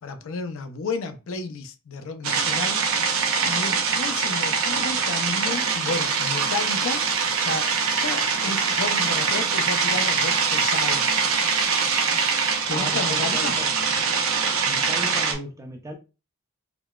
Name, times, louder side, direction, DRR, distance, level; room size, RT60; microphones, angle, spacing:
voice 1, 0.0-2.8 3.4-7.0 7.4-11.1 12.7-13.6, left 3 dB, 65° left, 0.4 m, -32 dB
sound 1, 2.2-15.3, right 5 dB, 70° right, 0.6 m, -23 dB
voice 2, 12.7-13.7 14.7-16.0, equal, 15° right, 0.4 m, -36 dB
3.7 x 2.2 x 2.2 m
head